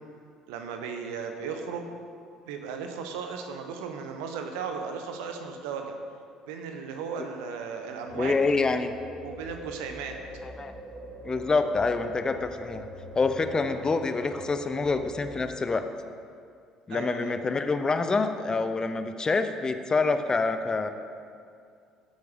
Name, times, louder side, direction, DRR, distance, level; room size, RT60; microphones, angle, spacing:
voice 1, 0.5-1.9 2.5-5.9 6.5-8.4 9.2-10.2 13.7-13.8 16.9-17.4, right 6 dB, 65° right, 5 dB, 0.9 m, -36 dB
voice 2, 8.1-8.9 10.4-10.7 11.2-12.8 13.1-15.8 16.9-20.9, left 3 dB, 25° left, 8 dB, 0.7 m, -26 dB
sound 1, 8.1-15.6, right 1 dB, 45° right, 2.3 m, -42 dB
16.0 x 8.0 x 3.5 m, 2.3 s
figure-of-eight pair, 55°, 3 cm